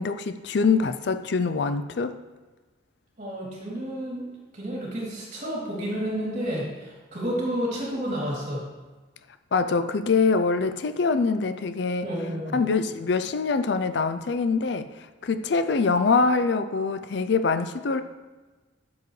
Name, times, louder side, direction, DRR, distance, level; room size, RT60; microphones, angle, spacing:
voice 1, 0.0-2.2 9.5-12.1 12.5-14.9 15.2-18.0, left 4 dB, 60° left, 10 dB, 0.4 m, -24 dB
voice 2, 3.2-8.6 12.0-12.6, equal, 40° right, -5 dB, 3.0 m, -31 dB
12.0 x 7.2 x 3.2 m, 1.2 s
head